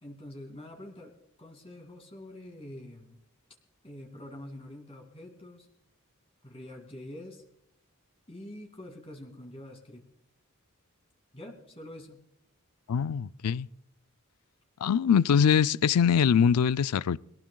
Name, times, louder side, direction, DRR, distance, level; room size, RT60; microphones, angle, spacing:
voice 1, 0.0-1.1 1.4-3.2 3.8-5.7 6.4-7.4 8.3-10.0 11.3-12.2, left 1 dB, 25° left, 2.5 m, -45 dB
voice 2, 12.9-13.7 14.8-17.2, left 7 dB, 85° left, 0.4 m, -23 dB
23.5 x 18.0 x 2.3 m
head